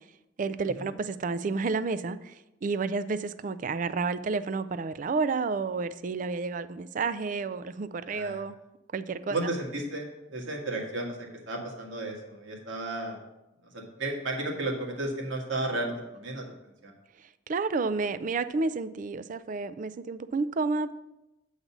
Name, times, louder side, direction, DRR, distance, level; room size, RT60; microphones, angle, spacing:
voice 1, 0.4-2.3 2.6-8.6 8.9-9.4 17.5-20.9, right 4 dB, 40° right, 14 dB, 0.4 m, -30 dB
voice 2, 8.0-8.4 9.3-13.2 13.7-16.9, right 2 dB, 80° right, -1 dB, 1.8 m, -33 dB
8.5 x 4.0 x 7.1 m, 0.95 s
head